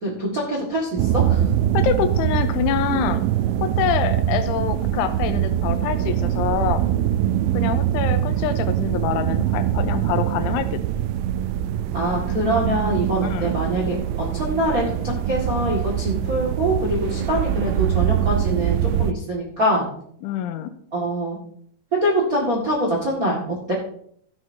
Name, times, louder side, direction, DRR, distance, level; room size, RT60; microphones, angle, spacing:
voice 1, 0.0-1.4 11.9-19.9 20.9-21.4 22.0-23.7, right 1 dB, 70° right, -3 dB, 0.8 m, -24 dB
sound 1, 1.0-19.1, right 11 dB, 85° right, 3.0 m, -23 dB
voice 2, 1.7-3.2 3.6-6.8 7.5-10.8 13.2-13.6 20.2-20.7, left 9 dB, 85° left, 9 dB, 3.2 m, -25 dB
15.5 x 11.0 x 2.8 m, 0.65 s
omnidirectional pair, 5.5 m